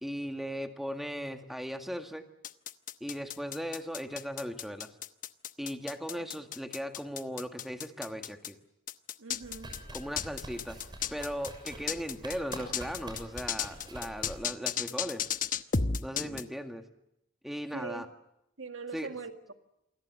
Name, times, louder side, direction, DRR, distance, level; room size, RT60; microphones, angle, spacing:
voice 1, 0.0-2.3 3.0-4.9 5.6-8.6 9.9-10.8 11.1-15.3 16.0-16.8 17.4-18.1 18.9-19.1, equal, ahead, 1.9 m, -38 dB
sound 1, 2.4-8.5 8.9-16.4, left 6 dB, 45° left, 1.0 m, -33 dB
voice 2, 6.1-6.4 9.2-10.0 17.7-18.1 18.6-19.5, right 4 dB, 90° right, 2.0 m, -42 dB
sound 2, 9.4-14.4, right 1 dB, 25° right, 6.3 m, -45 dB
28.0 x 21.5 x 7.6 m
head